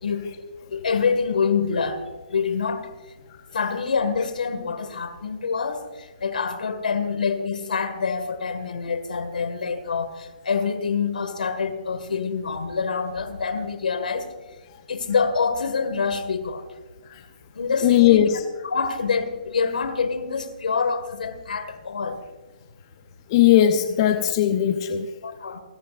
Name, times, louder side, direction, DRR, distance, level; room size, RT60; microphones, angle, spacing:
voice 1, 0.7-2.9 3.5-14.3 14.9-16.7 17.5-18.2 18.6-22.2 25.2-25.6, left 5 dB, 75° left, 10 dB, 2.0 m, -26 dB
voice 2, 17.8-18.4 23.3-25.1, left 11 dB, 35° left, 7 dB, 0.9 m, -18 dB
28.5 x 10.5 x 2.6 m, 1.2 s
hypercardioid pair, 150°, 5 cm